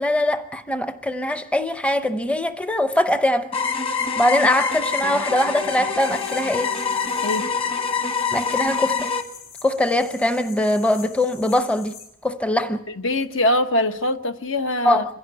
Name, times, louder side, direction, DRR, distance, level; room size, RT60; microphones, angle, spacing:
voice 1, 0.0-3.5 4.2-6.8 8.3-9.1 9.6-12.0 12.2-12.8 14.8-15.2, left 1 dB, 5° left, 0.7 m, -22 dB
sound 1, 3.5-9.2, left 5 dB, 30° left, 1.4 m, -25 dB
sound 2, 6.0-12.1, left 6 dB, 55° left, 4.9 m, -44 dB
voice 2, 13.0-15.0, left 1 dB, 70° left, 1.2 m, -22 dB
26.0 x 11.0 x 9.3 m
head